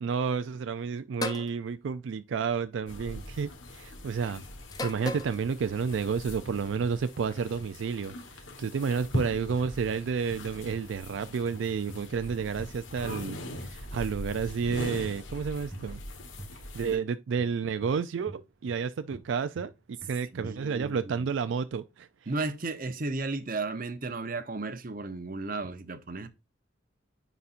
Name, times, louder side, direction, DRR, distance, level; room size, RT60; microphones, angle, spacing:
voice 1, 0.0-4.4 4.8-16.0 16.7-22.3, right 6 dB, 75° right, 0.4 m, -31 dB
sound 1, 1.2-1.5 2.7-3.1 4.7-5.4, left 2 dB, 20° left, 0.5 m, -35 dB
sound 2, 2.9-17.0, left 1 dB, 80° left, 1.4 m, -41 dB
sound 3, 4.3-4.8 5.1-5.6 6.8-7.8 9.0-10.0 10.3-13.3 14.3-14.5 15.0-15.3 15.7-15.9 16.4-16.6 17.4-18.8 19.1-21.0, right 1 dB, 5° left, 2.5 m, -47 dB
voice 2, 20.3-21.3 22.3-26.3, right 3 dB, 45° right, 0.7 m, -34 dB
9.7 x 4.1 x 2.5 m
head